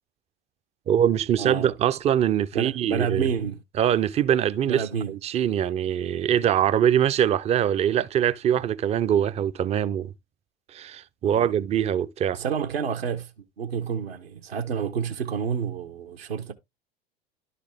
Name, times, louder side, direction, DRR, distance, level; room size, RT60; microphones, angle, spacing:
voice 1, 0.9-3.3 3.8-10.1 10.7-12.4, right 10 dB, 20° right, 0.4 m, -23 dB
voice 2, 1.4-1.7 2.5-3.6 4.7-5.1 11.2-11.5 12.3-13.3 13.6-16.5, right 6 dB, 75° right, 1.1 m, -29 dB
11.5 x 4.2 x 3.2 m
figure-of-eight pair, 80°, 31 cm